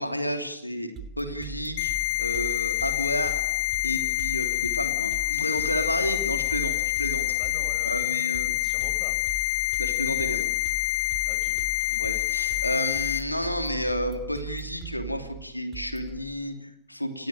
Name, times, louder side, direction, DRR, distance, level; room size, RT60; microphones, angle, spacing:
voice 1, 0.0-1.9 2.2-3.4 3.8-7.2 7.8-8.5 9.8-10.5 11.9-17.3, equal, 85° left, 7 dB, 3.1 m, -31 dB
sound 1, 1.0-16.2, right 4 dB, 30° right, 3.2 m, -40 dB
sound 2, 1.8-13.2, left 18 dB, 50° left, 1.5 m, -27 dB
voice 2, 7.3-9.2 11.2-11.6, left 2 dB, 15° left, 7 dB, 7.2 m, -47 dB
29.0 x 18.0 x 9.2 m, 0.78 s
figure-of-eight pair, 90°, 0 cm